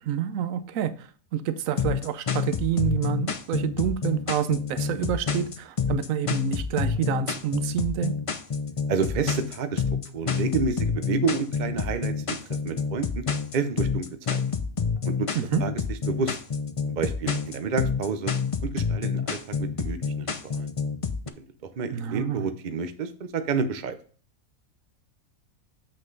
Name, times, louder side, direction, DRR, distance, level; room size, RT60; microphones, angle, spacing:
voice 1, 0.0-8.1 15.3-15.6 21.9-22.5, right 10 dB, 70° right, 11 dB, 1.1 m, -28 dB
sound 1, 1.8-21.3, left 5 dB, 50° left, 0.4 m, -28 dB
voice 2, 8.9-9.8 10.1-12.4 12.6-13.2 13.5-14.4 15.0-15.3 15.6-16.3 17.0-18.3 18.6-20.7 21.4-21.5 21.8-24.0, right 5 dB, 45° right, 9 dB, 0.6 m, -29 dB
7.7 x 6.4 x 3.9 m, 0.42 s
omnidirectional pair, 1.5 m